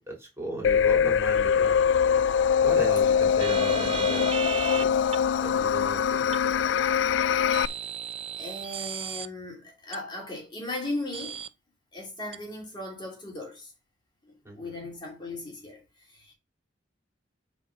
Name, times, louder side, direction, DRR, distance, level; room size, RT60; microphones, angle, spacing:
voice 1, 0.0-1.8 2.6-4.4 4.7-5.1 5.4-6.7 14.4-14.7, equal, 15° right, 3.5 m, -36 dB
sound 1, 0.6-7.7, left 7 dB, 75° left, 0.4 m, -23 dB
sound 2, 3.4-4.8 5.1-5.2 6.3-6.4 7.5-9.3 9.9-10.0 11.1-11.5 12.3-12.4, right 7 dB, 30° right, 0.4 m, -34 dB
voice 2, 8.4-11.4 11.9-13.7 14.2-16.3, left 2 dB, 25° left, 3.0 m, -37 dB
7.7 x 4.4 x 6.3 m
head